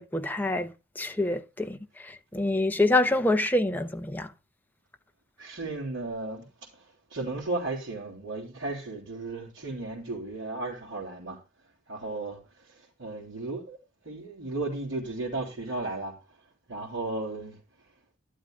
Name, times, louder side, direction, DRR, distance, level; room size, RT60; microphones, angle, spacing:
voice 1, 0.0-4.3, left 2 dB, 10° left, 0.9 m, -27 dB
voice 2, 5.4-6.4 7.1-11.4 11.9-12.4 13.0-13.8 14.1-16.1 16.7-17.6, right 2 dB, 80° right, 3.5 m, -34 dB
12.0 x 11.5 x 2.4 m
head